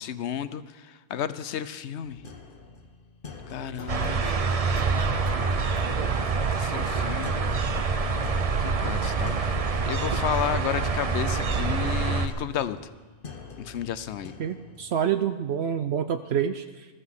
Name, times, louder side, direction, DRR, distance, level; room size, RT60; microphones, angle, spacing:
voice 1, 0.0-2.2 3.5-4.3 5.8-6.0 6.5-7.3 8.6-9.4 9.9-12.8 13.6-14.3, left 9 dB, 75° left, 14 dB, 0.9 m, -32 dB
sound 1, 2.0-14.9, left 3 dB, 50° left, 1.3 m, -44 dB
sound 2, 3.9-12.3, right 4 dB, 40° right, 0.7 m, -26 dB
voice 2, 14.4-16.9, right 8 dB, 70° right, 9 dB, 0.8 m, -27 dB
21.0 x 13.5 x 3.7 m, 1.3 s
omnidirectional pair, 1.2 m